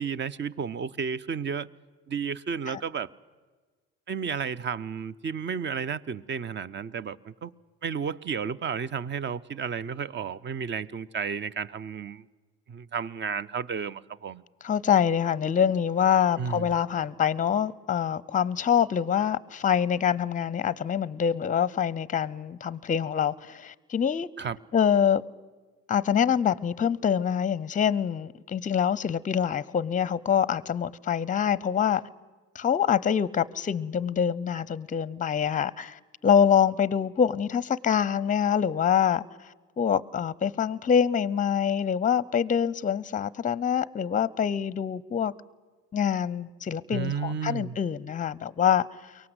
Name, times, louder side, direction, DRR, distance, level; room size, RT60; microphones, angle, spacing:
voice 1, 0.0-1.7 2.1-3.1 4.1-7.5 7.8-12.2 12.7-14.4 16.4-16.7 24.4-24.6 46.9-47.8, right 6 dB, 35° right, 0.7 m, -32 dB
voice 2, 14.6-24.3 24.7-25.2 25.9-32.0 32.5-45.3 45.9-49.1, left 8 dB, 25° left, 0.6 m, -25 dB
23.0 x 18.0 x 8.1 m
supercardioid pair, 75°, 31 cm